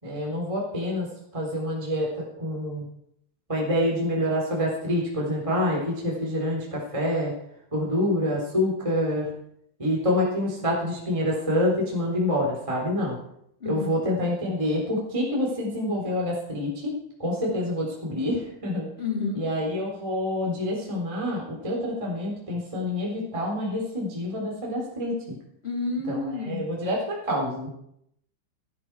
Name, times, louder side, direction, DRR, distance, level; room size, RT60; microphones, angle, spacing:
voice 1, 0.0-1.1 1.3-2.8 3.5-7.3 7.7-9.3 9.8-13.1 13.6-16.9 17.2-18.9 19.3-25.2 26.1-27.7, left 1 dB, 10° right, -3 dB, 3.2 m, -27 dB
voice 2, 13.6-14.0 19.0-19.4 25.6-26.6, left 4 dB, 15° left, 0 dB, 2.6 m, -30 dB
18.5 x 12.0 x 4.9 m, 0.75 s
omnidirectional pair, 5.3 m